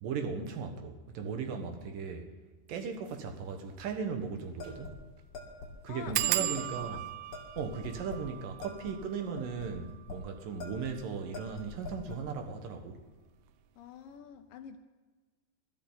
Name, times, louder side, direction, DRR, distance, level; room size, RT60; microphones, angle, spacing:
voice 1, 0.0-2.3 2.7-5.0 5.8-7.0 7.6-13.0, right 5 dB, 65° right, 5 dB, 2.8 m, -37 dB
sound 1, 3.0-3.2 3.6-3.7 3.9-4.0 4.6-4.8 5.1-5.2 6.1-11.4 12.1-12.6 12.9-13.3 13.5-13.6, right 15 dB, 85° right, 2.7 m, -37 dB
sound 2, 4.6-5.7 6.1-6.2 6.6-6.9 7.3-8.3 8.6-10.2 10.6-11.0 11.3-12.2, left 3 dB, 60° left, 4.6 m, -44 dB
voice 2, 5.9-7.0 13.8-14.8, left 7 dB, 75° left, 7 dB, 2.1 m, -46 dB
23.5 x 13.5 x 4.1 m, 1.3 s
omnidirectional pair, 4.7 m